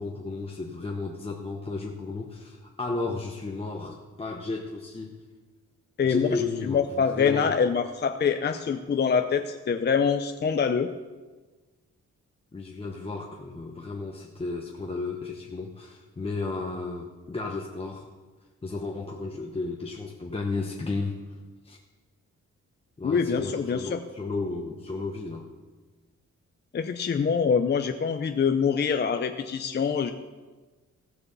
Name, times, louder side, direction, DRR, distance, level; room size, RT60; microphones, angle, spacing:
voice 1, 0.0-5.2 6.0-7.6 12.5-18.1 18.6-21.2 21.6-21.8 23.0-25.5, left 3 dB, 20° left, 0 dB, 0.9 m, -33 dB
voice 2, 6.0-10.9 23.0-24.0 26.7-30.1, left 6 dB, 35° left, 6 dB, 0.6 m, -25 dB
15.5 x 7.0 x 6.9 m, 1.3 s
wide cardioid pair, 135°, 30 cm